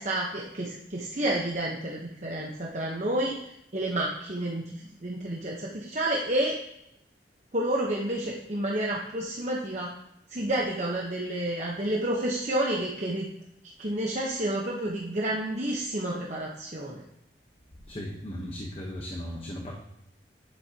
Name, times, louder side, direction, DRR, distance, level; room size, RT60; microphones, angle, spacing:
voice 1, 0.0-3.3 3.7-6.6 7.5-9.9 10.3-13.3 13.8-17.0 19.4-19.5, right 1 dB, 40° right, -3 dB, 1.1 m, -30 dB
voice 2, 17.9-19.7, equal, 30° left, -1 dB, 1.1 m, -37 dB
11.0 x 7.5 x 2.9 m, 0.80 s
head